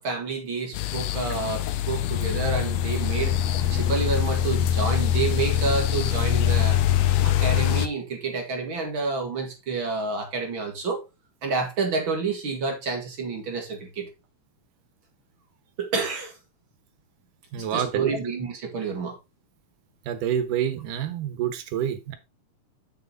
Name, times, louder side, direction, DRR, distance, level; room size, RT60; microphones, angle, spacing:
voice 1, 0.0-3.4 3.7-6.8 7.2-11.0 11.4-14.1 15.8-16.3 17.7-19.2, right 4 dB, 45° right, 2.0 m, -29 dB
sound 1, 0.7-7.9, left 11 dB, 75° left, 1.7 m, -23 dB
voice 2, 17.5-18.1 20.1-22.2, right 9 dB, 80° right, 2.6 m, -27 dB
7.1 x 6.8 x 3.9 m
omnidirectional pair, 3.7 m